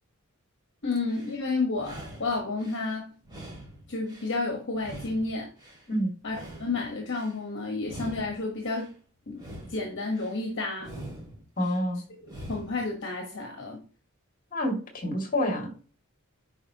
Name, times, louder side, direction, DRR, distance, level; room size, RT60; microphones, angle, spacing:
voice 1, 0.8-3.1 3.9-5.5 6.2-8.9 9.3-9.4 9.7-10.9 12.5-13.8, left 3 dB, 55° left, 2 dB, 1.4 m, -31 dB
sound 1, 0.9-1.4 1.7-2.9 3.2-4.4 4.8-5.9 6.2-7.4 7.8-8.9 9.3-10.4 10.8-11.8 12.2-12.9, right 1 dB, 20° right, 2.8 m, -44 dB
voice 2, 11.6-12.0 14.5-15.7, equal, 40° left, 2 dB, 2.4 m, -27 dB
10.0 x 4.6 x 3.0 m, 0.39 s
head